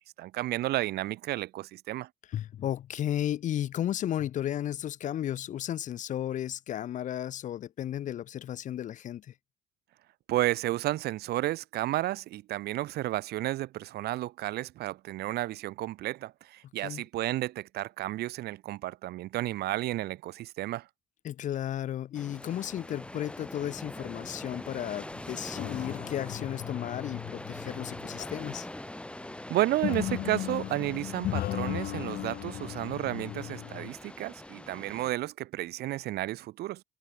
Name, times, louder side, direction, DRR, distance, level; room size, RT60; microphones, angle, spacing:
voice 1, 0.2-2.1 10.3-20.9 29.5-36.8, right 16 dB, 70° right, 0.9 m, -32 dB
voice 2, 2.3-9.3 16.8-17.0 21.2-28.7, left 11 dB, 50° left, 0.5 m, -34 dB
sound 1, 22.1-35.1, left 1 dB, 5° left, 3.3 m, -43 dB
sound 2, 25.5-28.6 29.8-33.9, left 14 dB, 65° left, 1.5 m, -36 dB
cardioid pair, 110°, 17 cm